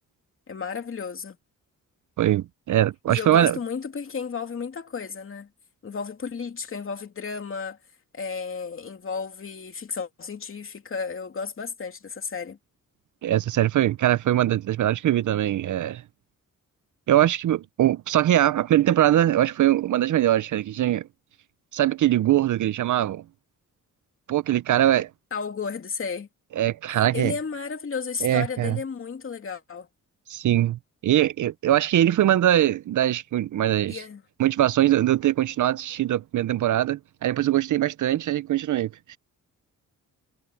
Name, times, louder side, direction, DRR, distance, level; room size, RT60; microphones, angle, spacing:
voice 1, 0.5-1.4 3.1-5.5 5.8-7.8 8.1-12.6 25.3-26.3 27.1-29.9 33.9-34.2, left 5 dB, 40° left, 2.8 m, -33 dB
voice 2, 2.2-3.6 13.2-16.0 17.1-21.1 21.7-23.2 24.3-25.1 26.6-27.3 28.2-28.8 30.3-34.0 34.4-39.2, right 12 dB, 65° right, 0.6 m, -22 dB
wide cardioid pair, 150°, 33 cm